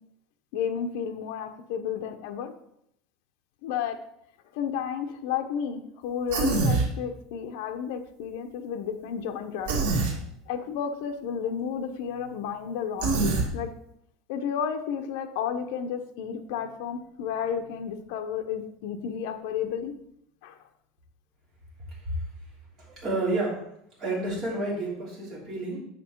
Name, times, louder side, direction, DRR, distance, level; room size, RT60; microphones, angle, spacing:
voice 1, 0.5-2.5 3.6-4.0 4.5-9.7 10.5-13.7 14.3-19.9 20.4-20.6, left 7 dB, 60° left, 6 dB, 0.7 m, -32 dB
Human voice, 6.3-6.9 9.7-10.1 13.0-13.5, right 3 dB, 90° right, 1.7 m, -24 dB
voice 2, 22.8-23.6 24.0-25.8, right 2 dB, 25° right, -5 dB, 3.0 m, -30 dB
7.7 x 5.2 x 4.5 m, 0.75 s
supercardioid pair, 175°, 0 cm